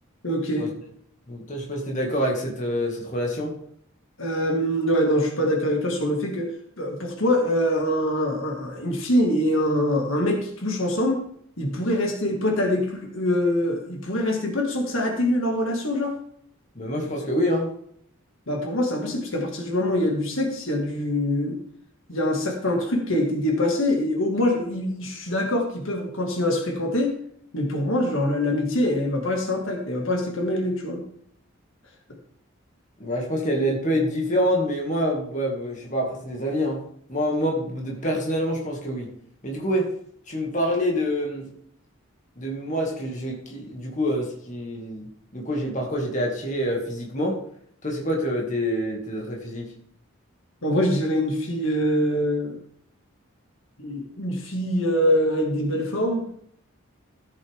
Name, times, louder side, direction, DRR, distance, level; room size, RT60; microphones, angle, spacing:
voice 1, 0.2-0.7 4.2-6.5 6.8-11.2 11.6-16.2 18.5-21.6 22.1-27.1 27.5-31.0 50.6-52.6 53.8-56.2, left 1 dB, 70° left, 1 dB, 2.2 m, -24 dB
voice 2, 1.3-3.5 16.8-17.7 33.0-36.8 37.1-39.2 39.4-39.9 40.3-41.5 42.4-47.4 47.8-49.8, equal, 35° left, -1 dB, 2.2 m, -26 dB
14.0 x 8.3 x 3.6 m, 0.66 s
head